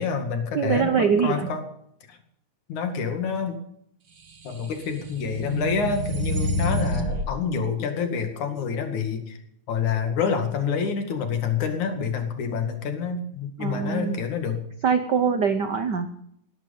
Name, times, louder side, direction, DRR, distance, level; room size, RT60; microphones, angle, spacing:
voice 1, 0.0-1.6 2.1-2.2 2.7-3.5 4.4-9.4 9.7-14.6, left 6 dB, 75° left, 6 dB, 3.6 m, -27 dB
voice 2, 0.5-1.5 13.6-14.2 14.8-16.1, right 6 dB, 75° right, 9 dB, 0.9 m, -23 dB
sound 1, 4.4-7.3, equal, 45° right, 2.3 m, -28 dB
17.5 x 12.5 x 5.4 m, 0.71 s
omnidirectional pair, 3.4 m